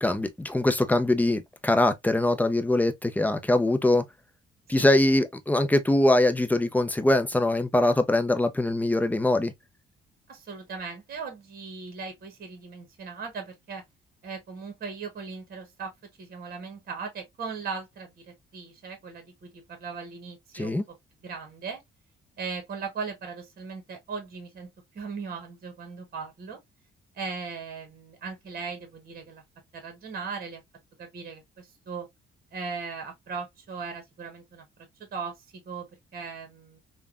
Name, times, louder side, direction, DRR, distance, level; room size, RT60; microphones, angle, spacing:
voice 1, 0.0-4.0 4.7-9.5 20.5-20.8, left 1 dB, 10° left, 0.5 m, -23 dB
voice 2, 10.3-13.8 14.2-15.9 16.2-20.8 21.2-21.8 22.4-26.6 27.1-29.4 29.7-30.6 31.0-32.1 32.5-34.6 35.0-36.8, right 5 dB, 50° right, 1.1 m, -38 dB
3.3 x 2.2 x 2.3 m
cardioid pair, 90°, 20 cm